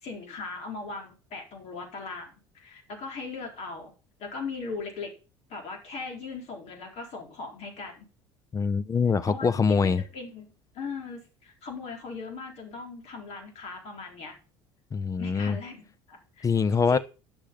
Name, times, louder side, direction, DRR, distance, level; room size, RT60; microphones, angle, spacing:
voice 1, 0.0-3.9 4.2-5.1 5.5-8.1 9.2-14.3 15.2-16.5 16.9-17.0, left 4 dB, 50° left, 4.1 m, -39 dB
voice 2, 8.5-10.0 14.9-15.6 16.4-17.0, left 5 dB, 25° left, 0.7 m, -24 dB
11.0 x 6.7 x 5.7 m
figure-of-eight pair, 60°, 14 cm